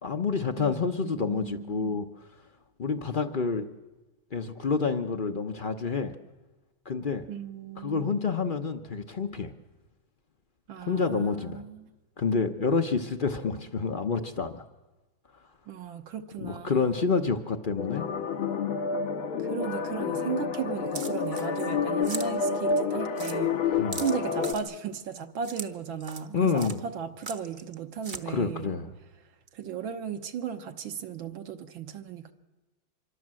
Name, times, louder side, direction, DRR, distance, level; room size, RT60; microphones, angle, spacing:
voice 1, 0.0-2.1 2.8-3.7 4.3-6.1 6.9-7.3 7.8-9.5 10.9-11.6 12.2-14.6 16.4-18.1 23.8-24.0 26.3-26.8 28.3-28.9, left 5 dB, 50° left, 7 dB, 0.5 m, -28 dB
voice 2, 0.6-2.0 7.3-8.3 10.7-11.9 15.7-17.3 19.4-23.6 24.0-28.8 29.5-32.3, right 7 dB, 75° right, 6 dB, 1.9 m, -36 dB
sound 1, 17.8-24.5, left 5 dB, 85° left, 2.1 m, -29 dB
sound 2, 20.9-21.7 22.0-22.3 22.7-22.8 23.2-23.4 23.9-24.6 25.4-25.7 26.0-26.3 26.6-26.8 27.2-27.7 28.0-28.2, right 4 dB, 35° right, 0.8 m, -39 dB
25.0 x 23.5 x 7.6 m, 1.2 s
omnidirectional pair, 2.2 m